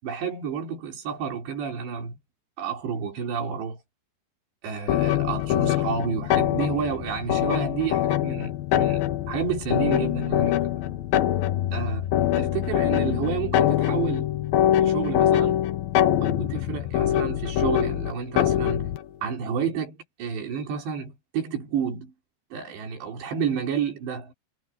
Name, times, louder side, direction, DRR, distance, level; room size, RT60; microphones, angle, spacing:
voice 1, 0.0-2.2 2.6-3.8 4.6-9.0 9.3-10.7 11.7-12.1 12.4-14.3 14.8-15.7 16.2-18.9 19.2-22.1 22.5-24.3, right 7 dB, 90° right, 6.2 m, -30 dB
sound 1, 4.9-19.0, left 12 dB, 70° left, 2.5 m, -24 dB
omnidirectional pair, 4.8 m